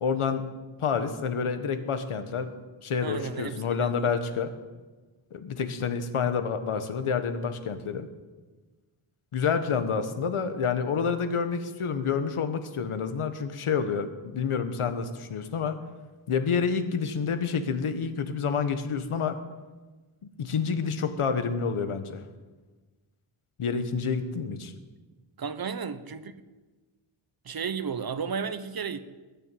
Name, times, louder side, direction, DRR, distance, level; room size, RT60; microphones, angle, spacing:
voice 1, 0.0-0.4 0.8-2.5 2.8-4.5 5.3-8.1 9.3-15.8 16.3-19.4 20.4-22.2 23.6-24.7, left 6 dB, 90° left, 9 dB, 1.5 m, -28 dB
voice 2, 3.0-4.1 25.4-26.3 27.4-29.0, right 6 dB, 45° right, 12 dB, 0.9 m, -33 dB
20.0 x 7.1 x 9.0 m, 1.3 s
wide cardioid pair, 150°, 49 cm